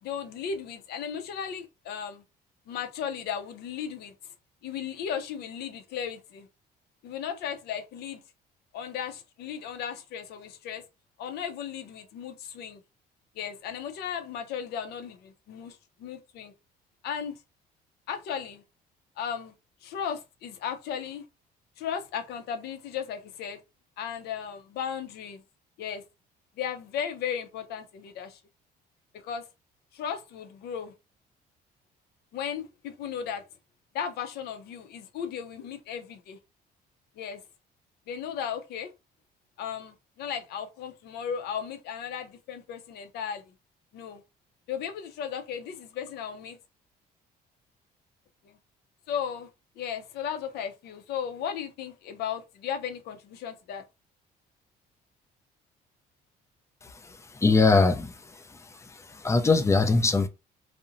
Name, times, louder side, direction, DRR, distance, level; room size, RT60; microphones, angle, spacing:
voice 1, 0.0-2.2 2.7-4.1 4.6-6.5 7.0-8.2 8.7-10.8 11.2-12.8 13.4-16.5 17.0-17.4 18.1-18.6 19.2-19.5 19.8-21.2 21.8-23.6 24.0-25.4 25.8-26.0 26.6-28.4 29.2-29.4 29.9-30.9 32.3-33.4 33.9-36.4 37.2-37.4 38.1-38.9 39.6-43.5 43.9-44.2 44.7-46.6 48.4-48.6 49.1-49.5 49.8-53.8, left 8 dB, 75° left, 0.5 m, -35 dB
voice 2, 57.4-58.1 59.2-60.3, left 3 dB, 15° left, 0.4 m, -20 dB
2.7 x 2.1 x 2.5 m
cardioid pair, 110°, 17 cm